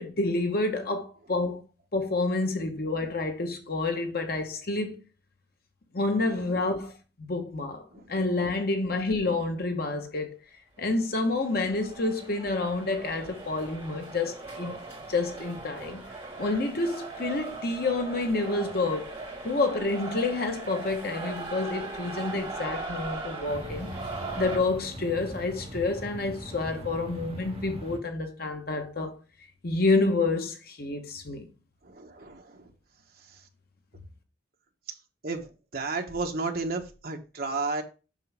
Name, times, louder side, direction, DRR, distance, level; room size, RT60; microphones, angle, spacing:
voice 1, 0.0-1.6 1.9-5.0 5.9-6.9 7.2-10.3 10.8-14.8 15.1-16.0 16.4-19.1 19.4-23.9 24.4-29.1 29.6-31.5, left 3 dB, 55° left, 1.1 m, -28 dB
sound 1, 11.0-24.6, right 3 dB, 15° right, 4.9 m, -39 dB
sound 2, 23.5-28.0, equal, 35° right, 1.9 m, -41 dB
voice 2, 31.8-32.7 35.2-35.5 35.7-37.8, right 3 dB, 55° right, 1.3 m, -32 dB
7.5 x 6.1 x 3.4 m
head